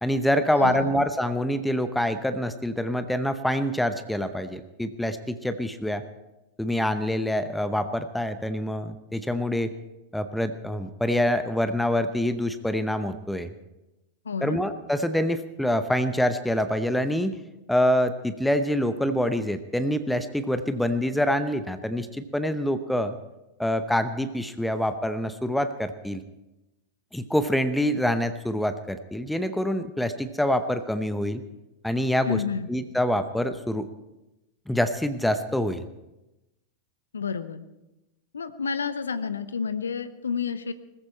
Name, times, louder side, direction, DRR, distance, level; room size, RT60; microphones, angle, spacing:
voice 1, 0.0-6.0 6.6-9.7 10.1-13.5 14.4-17.4 17.7-23.2 23.6-26.2 27.1-31.4 31.8-32.4 32.7-33.9 34.7-35.8, left 1 dB, 5° left, 11 dB, 0.8 m, -26 dB
voice 2, 0.6-0.9 14.2-14.6 32.2-32.7 37.1-37.7 38.3-40.7, left 5 dB, 70° left, 13 dB, 0.8 m, -30 dB
20.0 x 14.5 x 4.4 m, 0.97 s
figure-of-eight pair, 90°, 0 cm